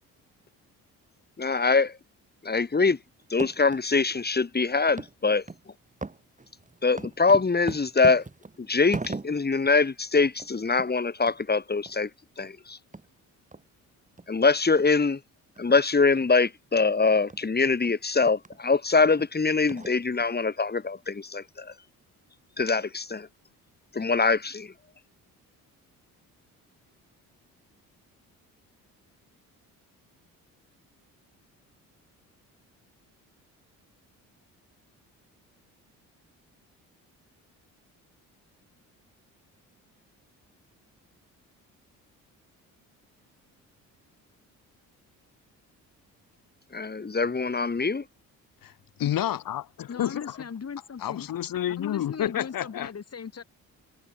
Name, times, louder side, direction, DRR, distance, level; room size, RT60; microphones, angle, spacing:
voice 1, 1.4-2.0 2.4-3.0 3.3-5.4 6.8-8.2 8.6-12.1 12.4-12.8 14.3-15.2 15.6-21.7 22.6-23.3 23.9-24.7 46.7-48.0, left 4 dB, 25° left, 3.2 m, -23 dB
sound 1, 3.2-3.8 4.3-4.4 5.0-5.1 5.5-5.6 6.0-9.6 10.0-10.1 10.3-10.5 10.8-10.9 11.3-11.4 11.9-12.0 12.4-12.5 12.9-13.1 13.5-13.6 14.2-14.3 14.8-14.9 15.6-15.8 16.2-16.3 16.8-16.9 17.3-17.4 17.8-17.9 18.4-18.6 19.2-19.3 19.7-20.2, right 3 dB, 20° right, 6.5 m, -38 dB
voice 2, 48.6-50.4 51.0-52.9, left 11 dB, 70° left, 7.8 m, -30 dB
voice 3, 49.9-51.3 51.8-53.4, left 6 dB, 45° left, 7.8 m, -38 dB
supercardioid pair, 70°, 35 cm